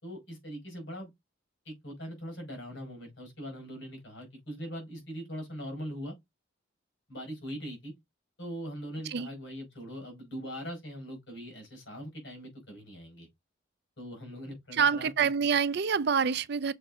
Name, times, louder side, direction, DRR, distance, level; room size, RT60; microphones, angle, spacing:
voice 1, 0.0-1.1 1.6-6.1 7.1-7.9 8.4-13.3 14.0-15.1 15.4-15.5, equal, 60° left, 4.5 m, -41 dB
voice 2, 14.7-16.7, right 6 dB, 55° right, 0.5 m, -26 dB
6.4 x 4.6 x 3.6 m
head